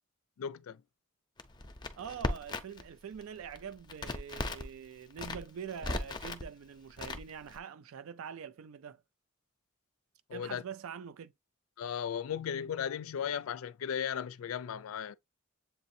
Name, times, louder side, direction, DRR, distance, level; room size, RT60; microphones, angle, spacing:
voice 1, 0.4-0.8 10.3-10.6 11.8-15.2, left 8 dB, 85° left, 0.4 m, -36 dB
Crackle, 1.4-2.9 3.1-4.7 5.1-6.4 7.0-7.6, left 2 dB, 20° left, 0.6 m, -37 dB
voice 2, 2.0-9.0 10.3-11.3, right 7 dB, 80° right, 0.4 m, -44 dB
7.8 x 2.6 x 2.6 m
head